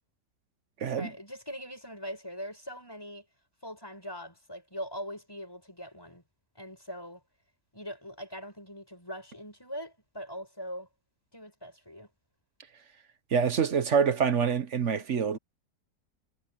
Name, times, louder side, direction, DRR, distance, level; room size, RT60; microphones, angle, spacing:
voice 1, 0.9-3.2 3.6-6.2 6.5-7.2 7.7-10.9 11.3-12.1, equal, 15° left, 6.3 m, -41 dB
voice 2, 13.3-15.4, right 6 dB, 50° right, 1.2 m, -26 dB
omnidirectional pair, 1.8 m